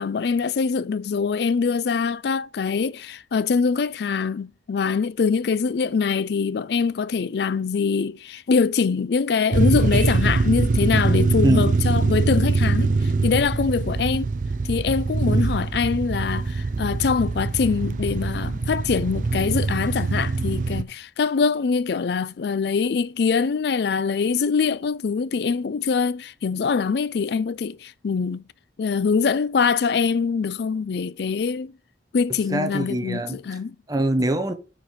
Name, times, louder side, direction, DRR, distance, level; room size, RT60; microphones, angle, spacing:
voice 1, 0.0-14.3 14.6-28.4 28.8-31.7 32.1-33.8, left 5 dB, 60° left, 0.4 m, -23 dB
sound 1, 9.5-20.8, right 3 dB, 45° right, 0.4 m, -23 dB
voice 2, 32.5-33.4 33.9-34.5, right 1 dB, 20° right, 0.9 m, -23 dB
7.6 x 4.5 x 4.8 m
head